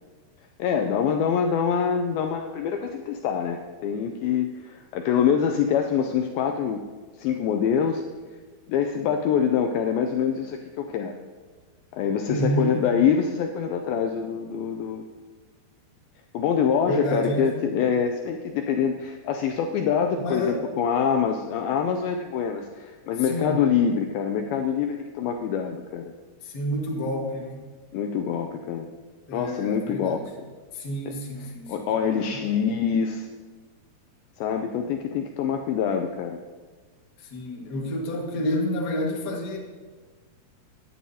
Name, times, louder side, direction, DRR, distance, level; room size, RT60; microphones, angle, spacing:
voice 1, 0.6-6.8 7.2-8.0 8.7-11.2 11.9-15.0 16.3-26.1 27.9-28.9 29.3-30.2 31.1-31.2 31.7-33.3 34.4-36.4, left 7 dB, 90° left, 4 dB, 2.1 m, -25 dB
voice 2, 12.3-12.8 16.8-17.6 20.2-20.6 23.2-23.6 26.4-27.7 29.3-30.2 30.7-32.4 37.2-39.6, equal, 50° left, -2 dB, 1.2 m, -29 dB
16.5 x 10.0 x 2.8 m, 1.4 s
omnidirectional pair, 4.8 m